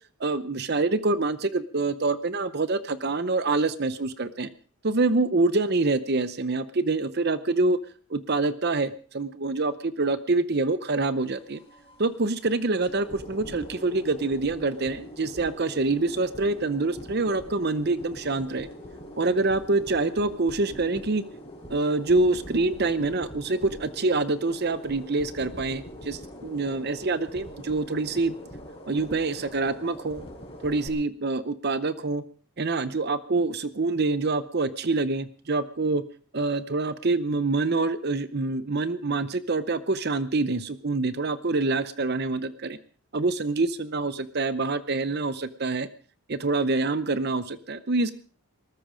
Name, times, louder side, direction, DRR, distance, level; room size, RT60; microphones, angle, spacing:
voice 1, 0.2-4.5 4.8-7.8 8.1-11.6 12.0-18.7 19.2-21.2 21.7-28.3 28.9-30.2 30.6-32.2 32.6-36.0 36.3-42.8 43.1-45.9 46.3-48.1, right 3 dB, 45° right, 14 dB, 0.7 m, -26 dB
sound 1, 11.2-30.9, equal, 25° left, 4.7 m, -43 dB
19.5 x 14.0 x 5.1 m, 0.42 s
head